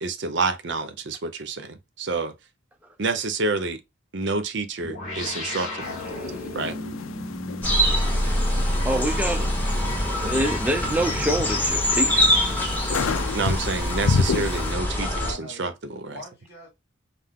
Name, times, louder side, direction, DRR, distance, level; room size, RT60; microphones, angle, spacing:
voice 1, 0.0-2.3 3.0-3.8 4.1-6.0 6.5-6.8 13.3-15.1 15.4-16.2, right 3 dB, 60° right, 0.6 m, -28 dB
sound 1, 4.8-13.6, left 1 dB, 35° left, 2.1 m, -37 dB
sound 2, 5.8-14.7, left 5 dB, 80° left, 0.4 m, -31 dB
sound 3, 7.6-15.3, left 1 dB, 10° left, 0.9 m, -24 dB
voice 2, 8.8-9.5 9.8-12.5, right 1 dB, 5° right, 0.4 m, -27 dB
voice 3, 14.9-16.7, left 1 dB, 55° left, 2.0 m, -42 dB
5.6 x 2.0 x 3.5 m
head